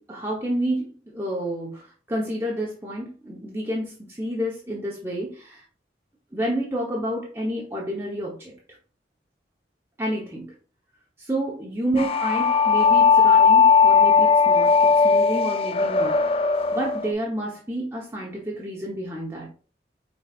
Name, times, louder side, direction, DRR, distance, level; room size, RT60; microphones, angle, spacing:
voice 1, 0.0-5.6 6.3-8.5 10.0-10.5 11.2-19.5, right 1 dB, 15° right, -3 dB, 0.8 m, -30 dB
sound 1, 12.0-17.1, left 5 dB, 35° left, 0.4 m, -18 dB
5.1 x 3.9 x 2.4 m, 0.38 s
head